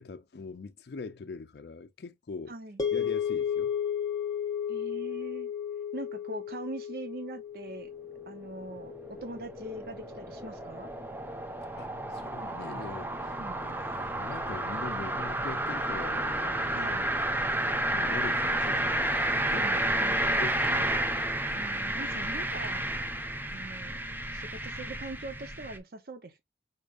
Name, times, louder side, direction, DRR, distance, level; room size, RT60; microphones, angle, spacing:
voice 1, 0.0-2.5 2.9-3.7 11.8-13.1 13.6-17.1 17.9-19.7 20.3-20.9, left 4 dB, 70° left, 0.4 m, -42 dB
voice 2, 2.5-2.8 4.7-5.5 5.9-7.9 8.3-10.9 13.4-13.6 16.7-17.1 19.5-20.2 21.6-22.8 23.5-24.0 24.3-26.4, right 2 dB, 55° right, 0.6 m, -42 dB
sound 1, 2.8-11.1, left 8 dB, 20° left, 1.0 m, -34 dB
sound 2, 8.2-25.8, right 1 dB, 10° right, 0.5 m, -31 dB
5.1 x 4.3 x 2.4 m
head